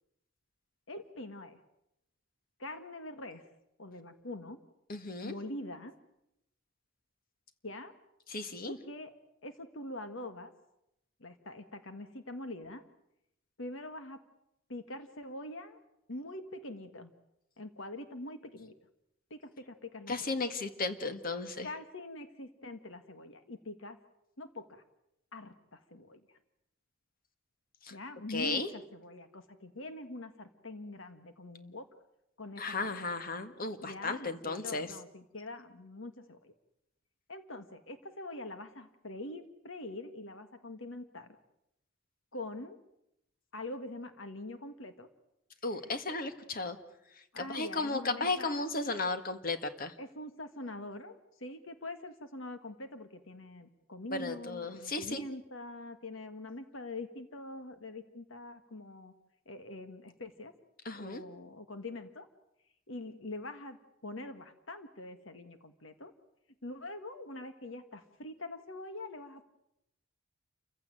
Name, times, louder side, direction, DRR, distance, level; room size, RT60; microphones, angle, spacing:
voice 1, 0.9-1.6 2.6-3.4 3.8-4.6 5.2-5.9 7.6-7.9 8.7-9.1 9.4-10.5 11.2-12.8 13.6-14.2 14.7-15.8 16.1-17.1 17.6-18.7 19.3-20.4 21.6-24.0 24.4-24.8 25.3-26.4 27.9-31.9 32.4-33.1 33.8-36.5 37.3-41.3 42.3-42.8 43.5-45.1 47.3-48.5 50.0-59.1 59.4-60.5 60.9-62.3 62.9-63.8 64.0-66.1 66.6-69.4, left 2 dB, 65° left, 9 dB, 1.7 m, -44 dB
voice 2, 4.9-5.3 8.3-8.7 20.1-21.7 27.9-28.0 28.3-28.7 32.6-34.9 45.6-46.8 47.4-49.9 54.1-55.2 60.8-61.2, left 3 dB, 45° left, 9 dB, 1.7 m, -35 dB
28.5 x 16.0 x 9.1 m, 0.83 s
head